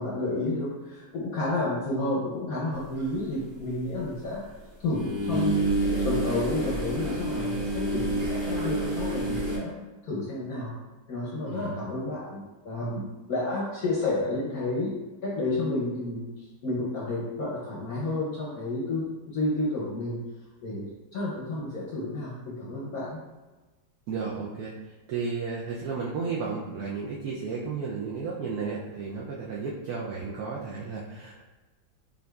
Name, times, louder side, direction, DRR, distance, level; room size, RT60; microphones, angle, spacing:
voice 1, 0.0-4.4 4.8-5.7 6.0-9.7 10.0-10.7 11.1-13.0 13.3-14.9 15.2-20.2 20.6-23.2, left 2 dB, 65° left, -5 dB, 0.9 m, -31 dB
sound 1, 3.0-3.1 4.9-9.6, right 1 dB, 35° right, 1.2 m, -28 dB
voice 2, 11.5-11.8 24.1-31.4, right 5 dB, 80° right, -4 dB, 0.8 m, -33 dB
5.8 x 2.6 x 2.3 m, 1.2 s
omnidirectional pair, 2.1 m